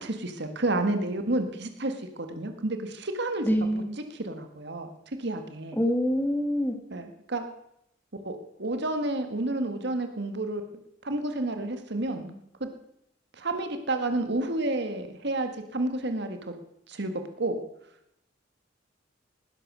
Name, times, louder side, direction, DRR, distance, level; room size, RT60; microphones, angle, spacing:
voice 1, 0.0-3.5 4.1-4.9 5.2-5.8 6.9-7.4 8.2-10.6 11.0-12.3 13.4-16.5 16.9-17.1 17.4-17.6, right 2 dB, 60° right, 7 dB, 1.7 m, -30 dB
voice 2, 3.4-3.9 5.8-6.8, equal, 10° left, 5 dB, 1.9 m, -25 dB
18.5 x 11.0 x 6.2 m, 0.80 s
head